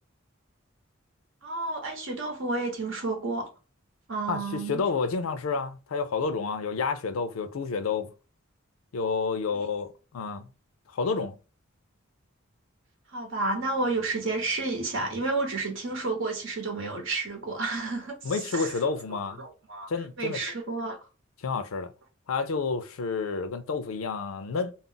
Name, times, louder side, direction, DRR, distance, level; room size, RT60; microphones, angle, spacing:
voice 1, 1.4-3.5 4.1-4.8 9.5-9.7 13.1-18.8 19.4-19.9 20.2-21.0, right 3 dB, 65° right, 0.8 m, -31 dB
voice 2, 4.3-8.1 8.9-10.5 10.9-11.4 18.2-19.4 19.9-20.4 21.4-21.9 22.3-24.7, left 4 dB, 85° left, 0.4 m, -29 dB
2.3 x 2.0 x 3.8 m
head